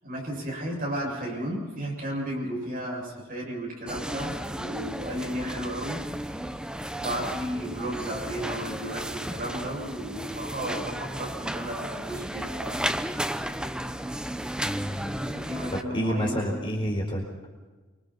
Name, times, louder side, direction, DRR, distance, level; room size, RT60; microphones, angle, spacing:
voice 1, 0.0-6.0 7.0-12.9 15.2-16.6, right 1 dB, 45° right, -1 dB, 7.6 m, -34 dB
sound 1, 3.9-15.8, right 1 dB, 5° right, 0.8 m, -34 dB
voice 2, 14.6-15.2 15.7-17.2, equal, 25° left, -1 dB, 4.6 m, -29 dB
27.5 x 25.0 x 4.4 m, 1.3 s
head